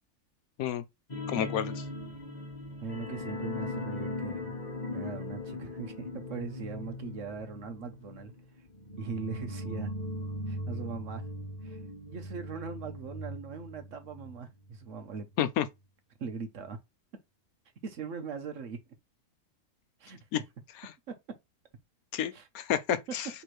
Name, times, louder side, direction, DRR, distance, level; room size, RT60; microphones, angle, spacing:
sound 1, 1.1-14.4 14.7-14.8 15.2-15.3, left 1 dB, 30° left, 1.3 m, -39 dB
voice 1, 1.3-1.8 15.4-15.7 20.3-20.4 20.8-20.9 22.1-23.3, left 10 dB, 80° left, 1.1 m, -30 dB
voice 2, 2.8-4.5 4.9-8.3 9.0-9.9 10.5-11.2 11.6-11.8 12.1-15.3 16.2-16.8 17.8-18.8 20.0-20.2 21.1-21.2 22.3-22.5, right 5 dB, 60° right, 1.1 m, -40 dB
4.6 x 3.5 x 3.1 m
omnidirectional pair, 1.6 m